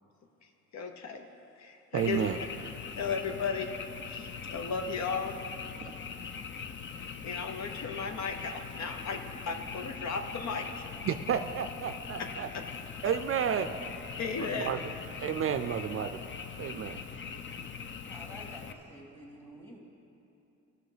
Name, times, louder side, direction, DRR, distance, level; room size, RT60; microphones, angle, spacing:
voice 1, 0.7-1.3 1.6-2.2 3.0-3.7 4.1-5.4 7.2-10.8 12.2-12.3 14.2-14.7, left 5 dB, 65° left, 5 dB, 0.9 m, -35 dB
voice 2, 1.9-2.4 5.8-5.9 11.0-12.5 13.0-13.7 14.4-14.8 15.2-16.2 16.6-17.0, right 8 dB, 45° right, 8 dB, 0.4 m, -31 dB
Frog, 2.0-18.7, left 6 dB, 40° left, 0.6 m, -42 dB
voice 3, 18.1-19.8, equal, 5° left, 0 dB, 1.8 m, -49 dB
15.0 x 6.4 x 5.0 m, 2.9 s
cardioid pair, 90°, 30 cm